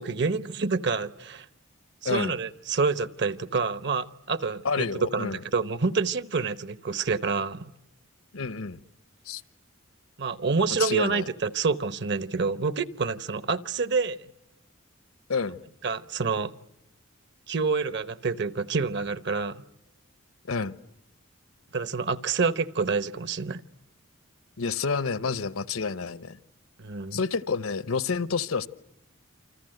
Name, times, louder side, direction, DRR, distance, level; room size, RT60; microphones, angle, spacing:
voice 1, 0.0-1.5 2.0-4.9 5.1-7.7 10.2-14.3 15.8-16.5 17.5-19.6 21.7-23.6 26.8-27.2, right 4 dB, 50° right, 1.0 m, -28 dB
voice 2, 4.6-5.4 8.3-8.8 9.3-9.4 10.8-11.2 15.3-15.6 20.5-20.7 24.6-26.4 27.1-28.7, left 5 dB, 80° left, 1.0 m, -29 dB
28.5 x 26.0 x 7.8 m
head